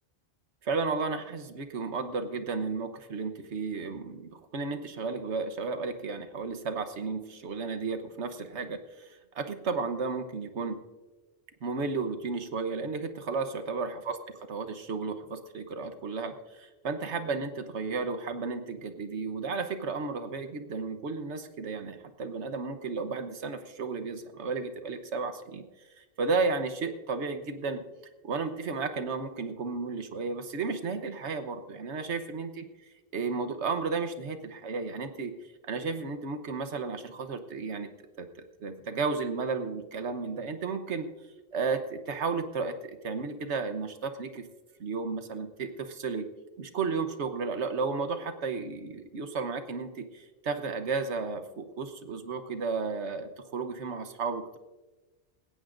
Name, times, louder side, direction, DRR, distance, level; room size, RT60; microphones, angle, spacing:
voice 1, 0.6-10.8 11.6-14.2 14.5-25.6 26.0-27.8 28.2-32.6 33.1-35.3 35.6-37.9 38.2-38.3 38.6-41.1 41.5-44.4 44.8-46.3 46.6-54.6, right 4 dB, 85° right, 8 dB, 1.3 m, -33 dB
19.0 x 16.5 x 2.6 m, 1.2 s
omnidirectional pair, 1.1 m